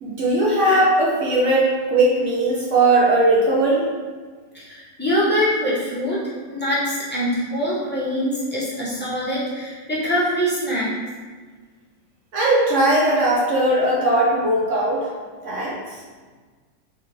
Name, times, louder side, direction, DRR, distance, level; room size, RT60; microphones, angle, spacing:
voice 1, 0.0-3.9 12.3-15.1 15.4-16.0, right 1 dB, 65° right, -4 dB, 0.7 m, -19 dB
voice 2, 4.5-6.2 6.5-10.9, equal, 10° left, -10 dB, 0.6 m, -23 dB
3.6 x 3.6 x 3.0 m, 1.5 s
omnidirectional pair, 2.0 m